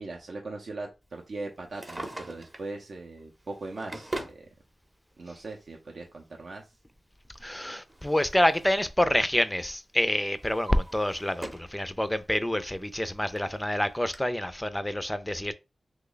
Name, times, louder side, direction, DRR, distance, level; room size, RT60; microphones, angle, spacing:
voice 1, 0.0-4.5 5.2-6.6, right 3 dB, 65° right, 0.5 m, -40 dB
Drawer open or close, 1.6-2.7 3.4-4.4 5.5-5.6 7.4-8.9 9.2-9.6 10.1-11.8 12.2-12.3 13.0-13.1 13.3-13.4 14.1-14.2, right 1 dB, 25° right, 0.7 m, -41 dB
voice 2, 7.4-15.5, left 1 dB, 10° left, 0.4 m, -27 dB
3.0 x 2.2 x 3.8 m
wide cardioid pair, 85°, 0 cm